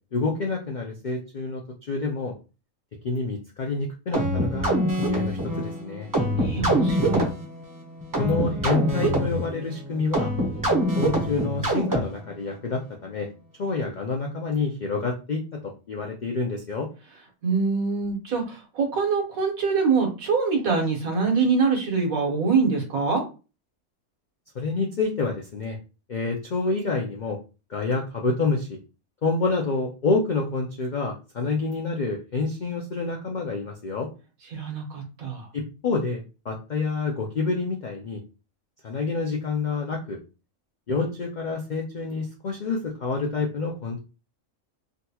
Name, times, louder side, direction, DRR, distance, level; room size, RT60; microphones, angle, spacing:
voice 1, 0.1-2.4 3.0-6.1 8.2-10.3 11.0-13.3 13.6-16.9 24.5-25.8 26.1-27.4 27.7-28.8 29.2-34.1 35.5-38.2 38.8-40.2 40.9-44.0, left 3 dB, 85° left, 1 dB, 0.4 m, -28 dB
sound 1, 4.1-12.3, right 1 dB, 25° right, 0.4 m, -25 dB
voice 2, 6.4-7.3 17.4-23.2 34.5-35.5, right 5 dB, 80° right, 1 dB, 1.6 m, -24 dB
3.7 x 2.3 x 2.8 m, 0.32 s
omnidirectional pair, 1.5 m